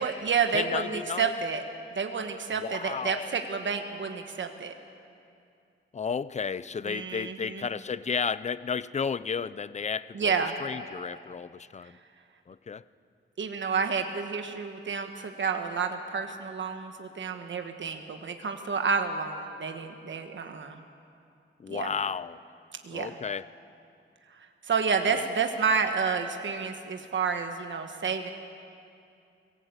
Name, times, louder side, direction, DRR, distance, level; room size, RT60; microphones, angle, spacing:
voice 1, 0.0-1.6 1.9-4.7 6.9-7.6 10.1-10.6 13.4-20.8 21.7-21.9 22.8-23.2 24.7-28.3, right 5 dB, 65° right, 5 dB, 1.3 m, -30 dB
voice 2, 0.5-1.3 2.6-3.3 5.9-10.3 10.6-12.0 12.5-12.8 21.6-22.4 22.9-23.5 25.1-25.2, left 6 dB, 35° left, 17 dB, 0.4 m, -33 dB
24.5 x 17.5 x 8.0 m, 2.5 s
wide cardioid pair, 150°, 21 cm